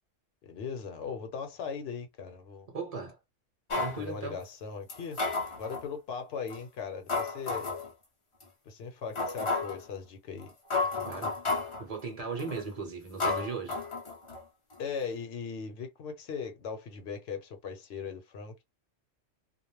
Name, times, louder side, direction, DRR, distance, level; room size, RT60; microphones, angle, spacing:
voice 1, 0.4-2.7 3.9-5.2 5.6-7.7 8.7-10.5 11.0-11.2 14.8-18.6, left 6 dB, 60° left, 0.9 m, -39 dB
voice 2, 2.7-3.2 3.7-4.4 11.0-11.3 11.8-13.8, right 4 dB, 35° right, 0.9 m, -37 dB
sound 1, 3.7-4.0 4.9-5.9 6.5-6.6 7.1-7.9 8.4-8.5 9.2-9.8 10.4-10.5 10.7-11.8 12.4-12.7 13.2-14.4 14.7-14.8, left 3 dB, 35° left, 0.5 m, -32 dB
2.5 x 2.0 x 3.0 m
omnidirectional pair, 1.3 m